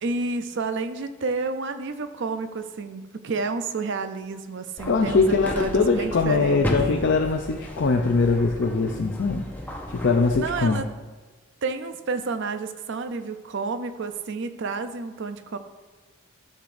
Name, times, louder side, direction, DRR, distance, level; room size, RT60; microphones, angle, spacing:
voice 1, 0.0-6.7 10.4-10.9 11.6-15.6, right 3 dB, 55° right, 9 dB, 0.5 m, -30 dB
sound 1, 4.8-10.8, equal, 10° left, 0.7 m, -33 dB
voice 2, 4.9-9.5 9.9-10.8, left 4 dB, 55° left, 3 dB, 0.5 m, -22 dB
13.5 x 6.6 x 2.6 m, 1.3 s
head